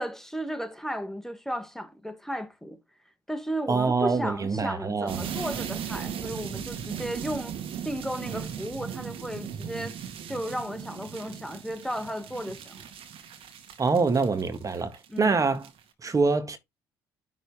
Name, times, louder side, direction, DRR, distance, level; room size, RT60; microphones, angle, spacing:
voice 1, 0.0-2.8 3.3-7.5 7.8-10.0 10.3-12.9 15.1-15.4, equal, 5° left, 1.5 m, -34 dB
voice 2, 3.7-5.2 13.8-15.7 16.0-16.6, right 4 dB, 30° right, 1.7 m, -25 dB
sound 1, 5.1-15.2 15.5-15.8, right 8 dB, 60° right, 1.9 m, -37 dB
10.5 x 4.0 x 3.6 m
hypercardioid pair, 55°, 11 cm